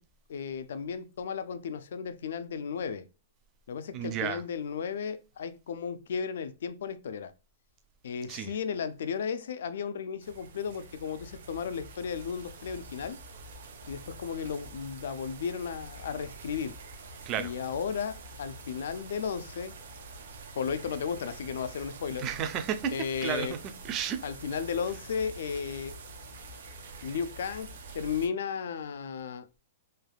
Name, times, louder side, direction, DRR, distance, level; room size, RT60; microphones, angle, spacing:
voice 1, 0.3-3.0 3.7-7.3 8.0-13.2 13.9-16.8 17.4-19.7 20.6-22.3 22.9-23.6 24.2-26.0 27.0-29.5, left 6 dB, 70° left, 0.3 m, -34 dB
voice 2, 3.9-4.4 8.3-8.5 17.3-17.5 22.2-23.0 23.2-23.6 23.8-24.2, right 8 dB, 25° right, 0.3 m, -32 dB
sound 1, 10.2-28.3, right 3 dB, 70° right, 0.6 m, -46 dB
3.3 x 2.3 x 2.2 m
hypercardioid pair, 165°, 0 cm